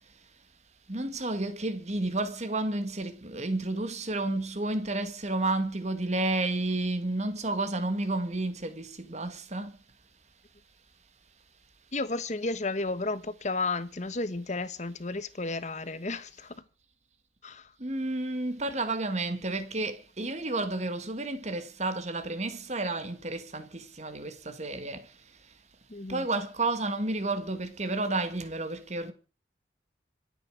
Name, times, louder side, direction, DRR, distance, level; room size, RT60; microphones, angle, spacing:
voice 1, 0.9-9.7 17.8-25.0 26.1-29.1, right 2 dB, 40° right, 1.9 m, -31 dB
voice 2, 11.9-16.5 17.4-17.7 25.9-26.3, left 3 dB, 40° left, 1.1 m, -33 dB
26.0 x 8.9 x 4.9 m
head